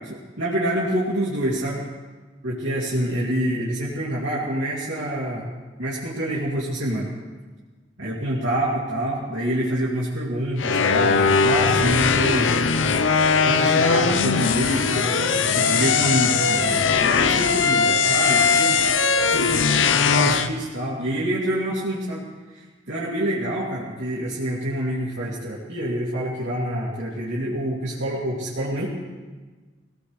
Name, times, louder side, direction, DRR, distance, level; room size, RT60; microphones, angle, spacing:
voice 1, 0.1-1.8 2.4-5.5 5.8-7.2 8.0-12.5 13.4-19.0 19.3-19.5 20.0-22.3 22.5-28.9, right 1 dB, 90° right, -8 dB, 2.6 m, -26 dB
sound 1, 10.6-20.5, left 5 dB, 85° left, 0.7 m, -20 dB
21.5 x 17.5 x 3.3 m, 1.4 s
head